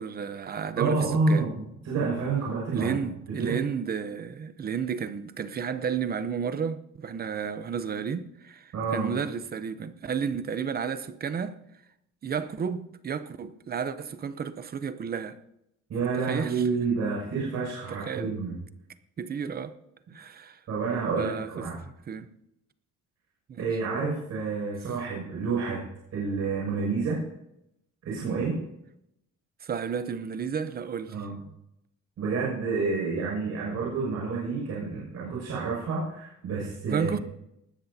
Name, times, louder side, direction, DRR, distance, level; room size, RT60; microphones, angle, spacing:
voice 1, 0.0-1.5 2.7-11.6 12.2-15.4 16.2-16.6 17.9-18.3 19.2-19.8 20.1-20.6 21.2-22.3 23.5-23.7 29.6-31.2 36.9-37.2, right 7 dB, 30° right, 0.7 m, -32 dB
voice 2, 0.7-2.9 3.4-3.6 8.7-9.1 15.9-18.6 20.7-21.8 23.6-25.8 26.1-27.2 28.0-28.6 31.1-31.3 32.2-37.2, right 4 dB, 60° right, 6.4 m, -29 dB
20.0 x 13.0 x 2.8 m
cardioid pair, 155°, 31 cm